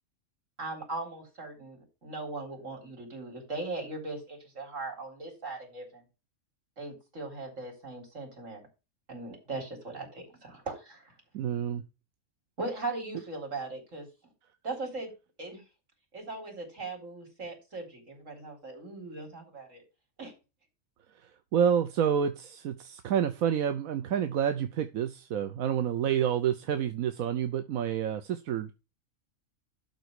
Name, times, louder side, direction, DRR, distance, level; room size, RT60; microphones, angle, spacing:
voice 1, 0.6-6.0 6.8-8.6 9.1-11.1 12.6-14.1 14.6-15.1 15.4-15.6 16.1-19.8 20.2-20.3, right 3 dB, 65° right, 4.2 m, -39 dB
voice 2, 11.3-11.8 21.2-28.7, right 8 dB, 85° right, 1.2 m, -29 dB
12.0 x 4.1 x 6.4 m
omnidirectional pair, 1.4 m